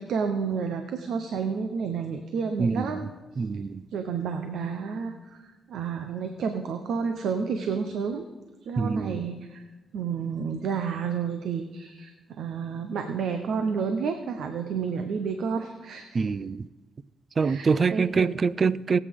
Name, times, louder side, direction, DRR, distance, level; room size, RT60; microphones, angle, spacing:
voice 1, 0.0-3.1 3.9-8.3 8.6-9.6 9.9-16.2 17.4-18.3, right 6 dB, 80° right, 6 dB, 0.9 m, -30 dB
voice 2, 2.6-3.0 3.4-3.9 8.8-9.2 16.1-16.7 17.4-19.0, right 5 dB, 45° right, 19 dB, 0.4 m, -25 dB
22.0 x 8.3 x 3.7 m, 1.2 s
cardioid pair, 80°, 0 cm